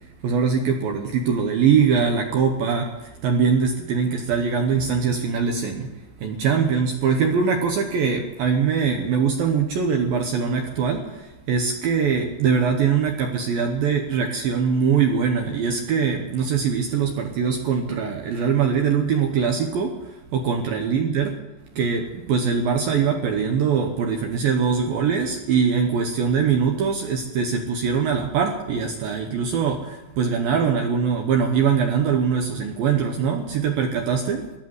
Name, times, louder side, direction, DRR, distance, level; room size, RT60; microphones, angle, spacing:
voice 1, 0.2-5.9 6.2-21.4 21.8-34.5, right 6 dB, 70° right, 4 dB, 2.3 m, -22 dB
15.0 x 11.5 x 8.0 m, 1.0 s
omnidirectional pair, 5.5 m